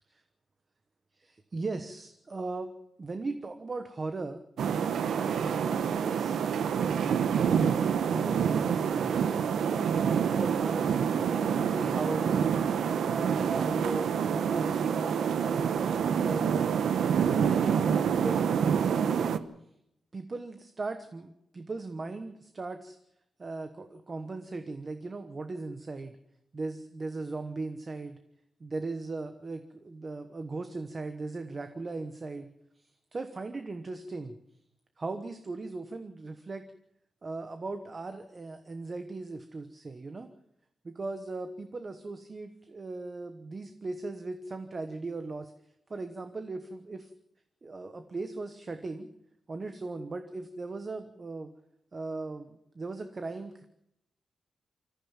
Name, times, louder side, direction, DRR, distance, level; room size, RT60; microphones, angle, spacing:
voice 1, 1.1-2.7 3.0-4.4 5.1-6.4 6.7-7.7 8.1-9.2 9.5-9.9 10.3-10.9 11.3-12.4 12.8-15.8 16.1-16.6 17.1-19.3 20.1-23.0 23.4-26.2 26.5-28.2 28.6-32.5 32.7-34.3 35.0-36.7 37.2-40.3 40.8-45.5 45.9-47.1 47.6-49.1 49.5-51.5 51.9-53.7, right 3 dB, 25° right, 8 dB, 1.1 m, -38 dB
sound 1, 4.6-19.4, right 7 dB, 80° right, 1.0 m, -27 dB
26.5 x 14.0 x 7.3 m, 0.77 s
wide cardioid pair, 180°, 0 cm